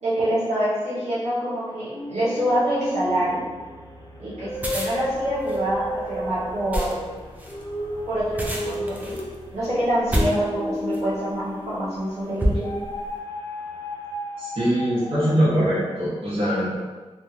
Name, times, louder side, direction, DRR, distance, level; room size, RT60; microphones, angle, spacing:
voice 1, 0.0-3.4 4.2-7.0 8.1-9.2 9.5-12.7, right 1 dB, 90° right, -11 dB, 1.1 m, -26 dB
sound 1, 1.9-12.1 12.6-15.4, left 1 dB, 30° left, 0.4 m, -33 dB
sound 2, 4.5-11.2 11.8-12.0 12.4-13.1, equal, 15° right, 0.5 m, -29 dB
voice 2, 14.4-16.7, equal, 55° right, -10 dB, 1.4 m, -22 dB
3.5 x 2.3 x 2.8 m, 1.3 s
wide cardioid pair, 100°, 11 cm